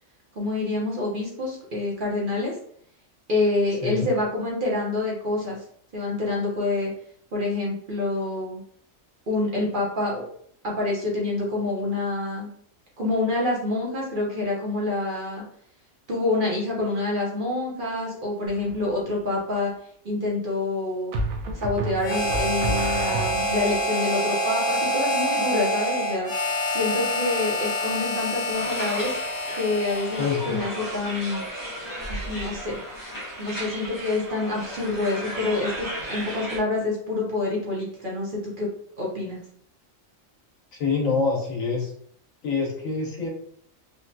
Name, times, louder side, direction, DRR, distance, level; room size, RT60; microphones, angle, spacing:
voice 1, 0.3-2.6 3.3-5.6 5.9-6.9 7.3-8.6 9.3-10.3 10.6-12.5 13.0-15.4 16.1-19.7 20.0-21.1 21.5-26.3 26.7-29.2 29.6-31.4 32.1-32.8 33.4-38.7 39.0-39.4, left 2 dB, 45° right, -4 dB, 0.8 m, -27 dB
sound 1, 18.5-18.9 21.1-23.8, right 2 dB, 90° right, 1.0 m, -30 dB
Harmonica, 22.0-30.6, equal, 60° left, 1.3 m, -27 dB
sound 2, 28.5-36.6, right 1 dB, 20° left, 0.7 m, -35 dB
voice 2, 30.2-30.6 40.7-41.9 42.4-43.3, left 4 dB, 80° left, -1 dB, 1.3 m, -26 dB
3.6 x 2.2 x 2.6 m, 0.63 s
omnidirectional pair, 1.4 m